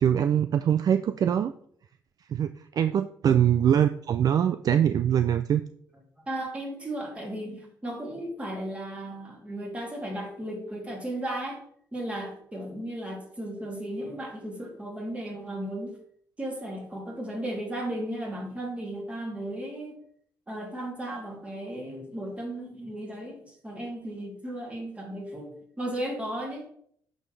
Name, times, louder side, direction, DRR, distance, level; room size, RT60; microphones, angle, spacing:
voice 1, 0.0-1.5 2.3-2.5 2.7-5.6, right 9 dB, 50° right, 10 dB, 0.3 m, -23 dB
voice 2, 6.3-11.6 11.9-16.0 16.4-20.0 20.5-26.7, right 1 dB, 15° right, -1 dB, 2.6 m, -35 dB
8.9 x 6.3 x 3.3 m, 0.64 s
cardioid pair, 120°, 8 cm